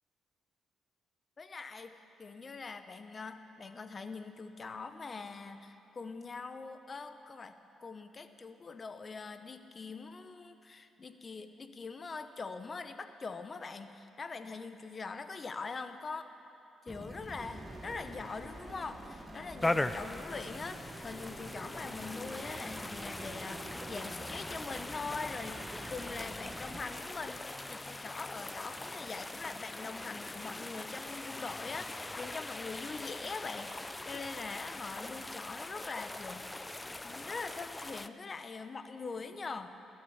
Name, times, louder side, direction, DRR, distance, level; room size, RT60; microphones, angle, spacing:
voice 1, 1.4-1.9 2.2-16.3 16.8-36.4 37.0-39.7, left 4 dB, 35° left, 9 dB, 0.9 m, -43 dB
sound 1, 16.9-26.9, equal, ahead, 1.4 m, -49 dB
sound 2, 17.4-27.4, right 3 dB, 40° right, 1.5 m, -51 dB
sound 3, 19.6-38.1, left 2 dB, 15° left, 0.5 m, -41 dB
16.0 x 11.5 x 7.2 m, 2.9 s
cardioid pair, 90°, 0 cm